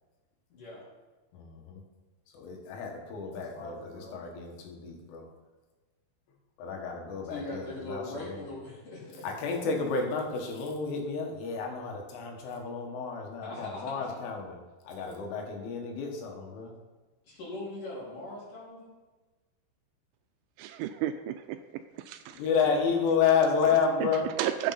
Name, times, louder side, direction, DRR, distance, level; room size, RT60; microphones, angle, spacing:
voice 1, 0.5-0.9 3.2-4.1 7.2-9.3 13.4-14.2 17.2-18.9, left 2 dB, 45° left, -6 dB, 5.1 m, -41 dB
voice 2, 1.3-1.8 2.3-5.3 6.6-8.4 9.2-14.6 14.9-16.7 22.4-24.3, left 5 dB, 80° left, 1 dB, 4.2 m, -30 dB
voice 3, 20.6-22.4 24.0-24.7, right 11 dB, 85° right, 9 dB, 2.9 m, -33 dB
15.0 x 8.1 x 4.2 m, 1.2 s
omnidirectional pair, 5.6 m